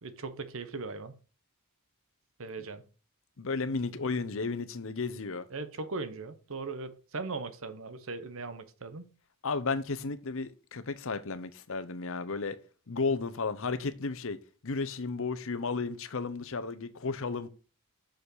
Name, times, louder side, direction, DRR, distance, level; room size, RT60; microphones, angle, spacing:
voice 1, 0.0-1.1 2.4-2.8 5.5-9.1, right 3 dB, 65° right, 1.0 m, -39 dB
voice 2, 3.4-5.5 9.4-12.6 12.9-14.4 14.6-17.5, left 4 dB, 65° left, 0.8 m, -33 dB
6.5 x 5.6 x 6.3 m
head